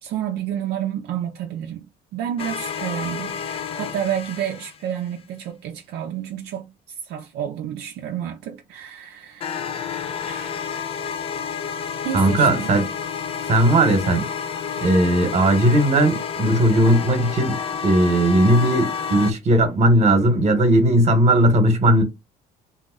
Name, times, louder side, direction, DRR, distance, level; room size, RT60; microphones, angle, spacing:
voice 1, 0.0-1.9 2.1-6.7 7.0-10.7 12.0-12.8, right 10 dB, 75° right, 0.5 m, -30 dB
sound 1, 2.4-5.1 9.4-19.3, left 6 dB, 35° left, 0.3 m, -30 dB
voice 2, 12.1-12.9 13.5-14.3 14.8-22.0, right 1 dB, 40° right, 1.1 m, -17 dB
2.7 x 2.0 x 3.7 m
cardioid pair, 110°, 17 cm